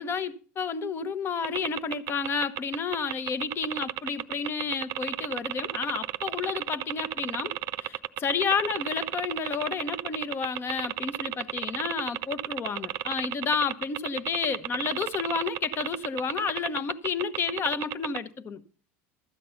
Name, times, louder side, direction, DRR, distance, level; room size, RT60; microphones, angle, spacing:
voice 1, 0.0-18.6, left 5 dB, 35° left, 1.0 m, -31 dB
sound 1, 1.4-18.2, right 14 dB, 60° right, 0.6 m, -32 dB
13.0 x 8.3 x 5.7 m
supercardioid pair, 120°, 7 cm